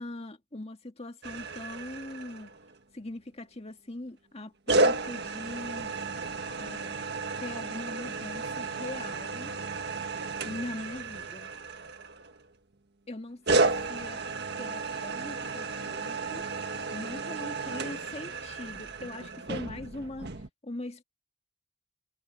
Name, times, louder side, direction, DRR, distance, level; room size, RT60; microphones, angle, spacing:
voice 1, 0.0-2.5 2.9-6.0 6.6-7.1 7.4-9.5 10.4-11.5 13.1-14.2 14.6-16.4 16.9-20.3 20.6-21.0, left 2 dB, 30° left, 1.8 m, -41 dB
sound 1, 1.2-2.8 4.7-12.5 13.5-20.5, right 3 dB, 50° right, 1.7 m, -32 dB
head